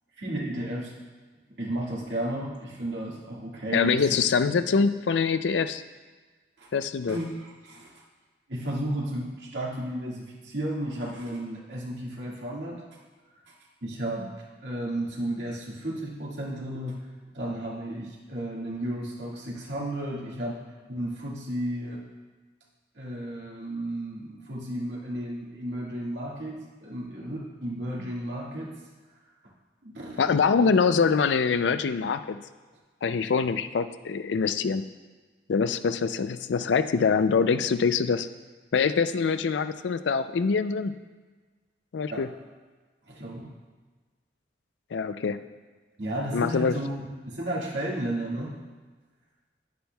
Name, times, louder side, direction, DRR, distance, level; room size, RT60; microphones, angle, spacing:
voice 1, 0.2-0.9 1.6-4.2 6.6-6.7 7.1-8.0 8.5-12.8 13.8-14.3 14.6-17.0 17.3-20.6 20.9-22.0 23.0-28.7 29.8-30.4 42.1-42.3 43.1-43.5 46.0-47.0 47.2-48.5, right 1 dB, 85° right, -4 dB, 1.9 m, -33 dB
voice 2, 3.7-5.8 6.7-7.2 30.2-32.4 33.0-34.8 35.5-38.3 38.7-41.0 41.9-42.3 44.9-45.4 46.3-46.8, left 5 dB, 85° left, 11 dB, 0.4 m, -24 dB
10.5 x 9.5 x 2.3 m, 1.4 s
head